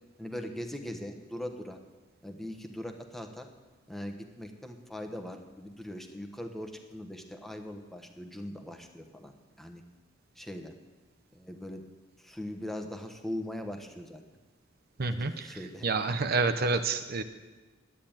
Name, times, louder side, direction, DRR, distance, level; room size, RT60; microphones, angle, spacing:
voice 1, 0.2-1.8 2.2-3.5 3.9-9.3 9.6-9.8 10.3-10.7 11.3-11.8 12.2-14.2 15.2-15.9, left 1 dB, ahead, 4 dB, 1.2 m, -40 dB
voice 2, 15.0-17.2, right 3 dB, 50° right, 9 dB, 0.7 m, -29 dB
11.0 x 9.7 x 8.8 m, 1.2 s
head